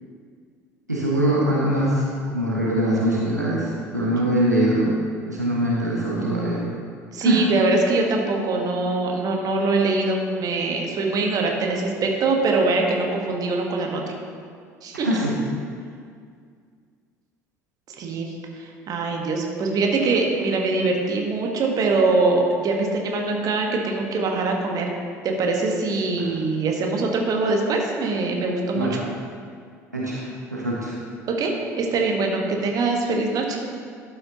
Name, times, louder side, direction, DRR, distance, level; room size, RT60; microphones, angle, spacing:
voice 1, 0.9-4.9 5.2-6.6 7.2-7.5 15.0-15.4 26.2-26.3 28.7-29.0 29.9-30.2 30.5-30.9, right 1 dB, 90° right, -5 dB, 1.0 m, -22 dB
voice 2, 7.1-14.0 14.8-15.2 18.0-24.9 25.2-28.9 31.3-33.6, right 3 dB, 45° right, 1 dB, 1.3 m, -23 dB
12.0 x 5.6 x 2.9 m, 2.1 s
figure-of-eight pair, 60°, 9 cm